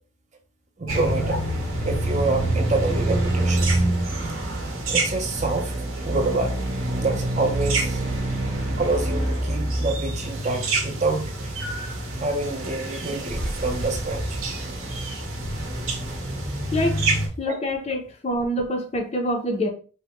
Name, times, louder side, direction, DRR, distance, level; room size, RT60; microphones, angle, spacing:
voice 1, 0.8-1.4 1.8-3.8 4.9-5.7 6.0-6.6 7.0-8.0 8.8-11.5 12.2-14.4, right 3 dB, 35° right, 0.5 m, -27 dB
sound 1, 0.9-17.3, right 1 dB, 75° right, 0.8 m, -26 dB
voice 2, 16.7-17.0 17.4-19.7, left 1 dB, 30° left, 0.5 m, -26 dB
3.3 x 2.1 x 2.9 m
head